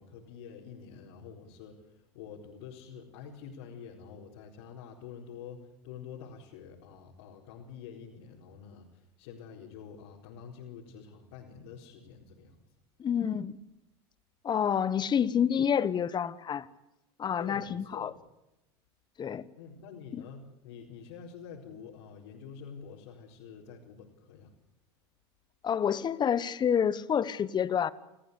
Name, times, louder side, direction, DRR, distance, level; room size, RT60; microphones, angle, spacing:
voice 1, 0.0-12.6 17.4-18.2 19.6-24.5, left 7 dB, 75° left, -3 dB, 4.5 m, -47 dB
voice 2, 13.0-13.6 14.4-16.7 17.2-18.1 19.2-19.4 20.1-20.2 25.6-27.9, left 8 dB, 30° left, 17 dB, 1.3 m, -28 dB
29.0 x 15.0 x 8.4 m, 0.93 s
supercardioid pair, 100°, 14 cm